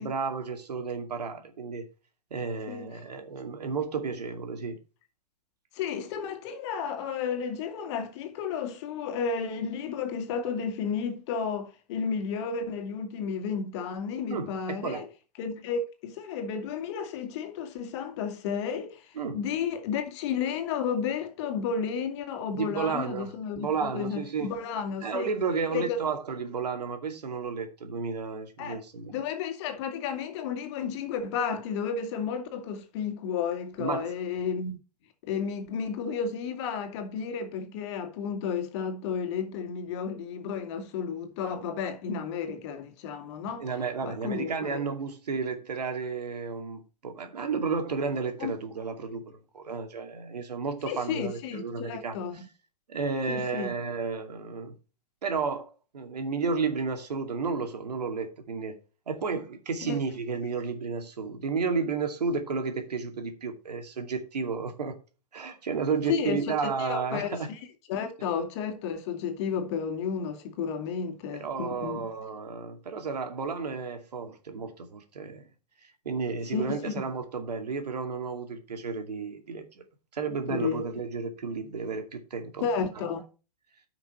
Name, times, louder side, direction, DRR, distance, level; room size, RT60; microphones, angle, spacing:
voice 1, 0.0-1.9 2.3-4.8 14.3-15.1 19.2-19.4 22.5-24.5 25.0-29.1 33.8-34.1 43.6-52.2 52.9-54.7 55.2-55.7 55.9-58.8 59.1-64.9 65.3-67.5 71.4-75.4 76.0-79.6 80.1-82.7, right 5 dB, 90° right, 2.5 m, -32 dB
voice 2, 5.7-15.1 15.4-25.3 25.7-26.0 28.6-28.8 29.1-34.8 35.2-43.6 44.0-44.8 48.4-48.5 50.8-52.5 53.3-53.7 59.8-60.0 66.1-67.6 67.9-72.1 76.5-76.9 80.5-80.8 82.6-83.2, left 6 dB, 45° left, 2.3 m, -32 dB
10.5 x 6.0 x 4.4 m
hypercardioid pair, 145°, 20 cm